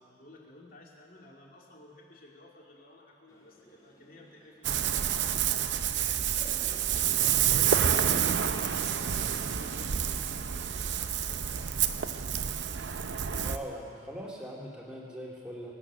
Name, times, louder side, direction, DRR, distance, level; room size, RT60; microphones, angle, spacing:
voice 1, 0.0-6.6 7.3-11.7, left 1 dB, 50° left, -2 dB, 2.5 m, -54 dB
sound 1, 3.3-9.0, equal, 20° left, 2.0 m, -55 dB
Ocean, 4.6-13.6, right 9 dB, 70° right, 0.6 m, -28 dB
voice 2, 13.4-15.7, equal, 5° right, -4 dB, 2.5 m, -41 dB
24.0 x 9.1 x 6.3 m, 2.6 s
head